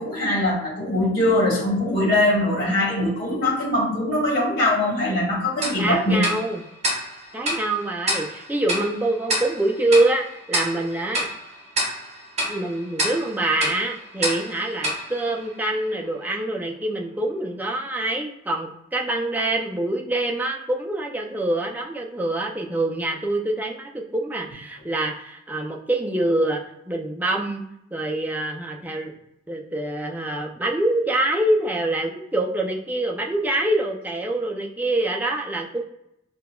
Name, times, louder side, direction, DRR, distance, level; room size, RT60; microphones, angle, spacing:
voice 1, 0.0-6.3, left 1 dB, 50° left, -4 dB, 1.4 m, -22 dB
Tick-tock, 5.6-16.1, right 1 dB, 35° right, 0.8 m, -29 dB
voice 2, 5.8-6.6 7.3-11.3 12.5-26.6 26.9-27.6 27.9-29.1 29.5-35.8, right 2 dB, 10° right, 0 dB, 0.3 m, -25 dB
5.4 x 2.2 x 2.2 m, 0.81 s
head